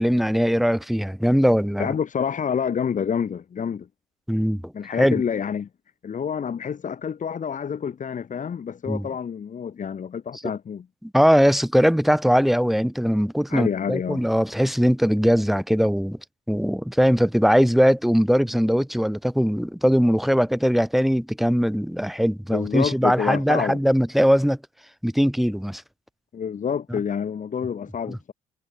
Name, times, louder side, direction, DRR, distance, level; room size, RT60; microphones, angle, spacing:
voice 1, 0.0-1.9 4.3-4.7 5.0-5.2 8.9-9.1 11.0-16.2 16.5-24.6 25.0-25.8 28.1-28.2, equal, ahead, 1.7 m, -20 dB
voice 2, 1.8-3.9 4.7-5.7 6.0-10.9 13.5-14.3 22.5-23.8 26.3-28.3, left 7 dB, 40° left, 3.5 m, -28 dB
hypercardioid pair, 55°, 19 cm